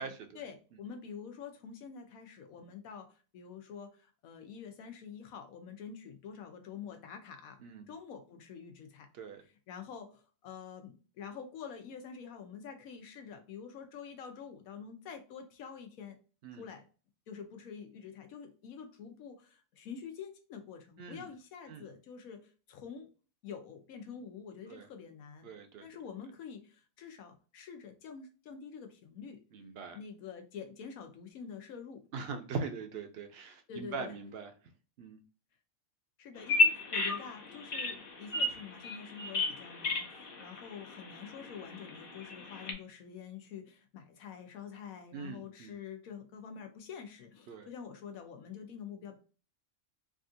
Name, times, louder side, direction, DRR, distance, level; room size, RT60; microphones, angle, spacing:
voice 1, 0.0-7.6 7.9-9.1 9.7-16.2 16.5-16.9 17.3-23.1 23.4-25.5 25.8-29.4 29.9-32.0 33.7-34.2 36.2-49.2, left 7 dB, 85° left, 1.1 m, -47 dB
voice 2, 7.6-7.9 9.1-9.4 16.4-16.6 21.0-21.3 21.7-21.9 24.7-24.9 25.4-25.9 29.5-30.0 32.1-34.5 35.0-35.2 45.1-45.7 47.5-47.7, right 4 dB, 65° right, 0.6 m, -41 dB
Bird vocalization bird call bird song, 36.4-42.7, left 2 dB, 50° left, 0.9 m, -33 dB
3.5 x 2.4 x 2.5 m
omnidirectional pair, 1.4 m